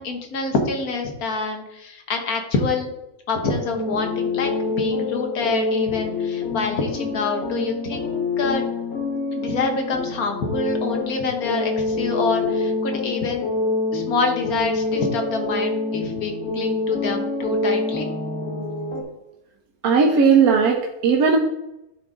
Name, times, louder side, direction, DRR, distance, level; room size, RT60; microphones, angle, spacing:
voice 1, 0.0-2.9 3.3-8.6 9.3-13.5 13.9-18.0, left 3 dB, 90° left, 3 dB, 1.6 m, -26 dB
sound 1, 3.7-19.0, left 3 dB, 45° left, 1.6 m, -26 dB
voice 2, 19.8-21.4, right 5 dB, 85° right, 2 dB, 1.2 m, -17 dB
10.5 x 3.9 x 3.6 m, 0.90 s
omnidirectional pair, 1.5 m